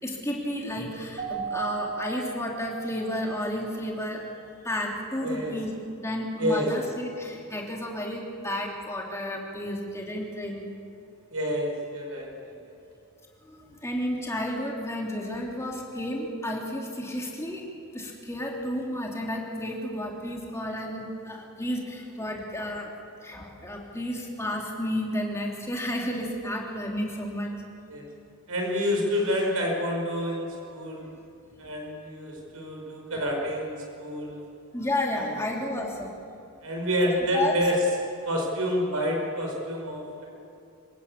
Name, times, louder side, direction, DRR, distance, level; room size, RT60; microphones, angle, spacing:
voice 1, 0.0-4.3 4.6-10.7 13.4-22.9 23.2-27.6 31.1-31.2 33.1-33.2 34.7-36.1 37.1-37.6, left 1 dB, 15° left, -1 dB, 3.3 m, -32 dB
Keyboard (musical), 1.2-3.4, right 6 dB, 35° right, 7.8 m, -35 dB
voice 2, 5.2-5.6 6.4-6.9 11.3-12.5 27.9-28.0 28.5-31.1 31.6-34.4 35.1-35.3 36.6-37.8 38.2-40.3, equal, 80° right, 0 dB, 5.1 m, -28 dB
26.5 x 16.5 x 8.5 m, 2.7 s
head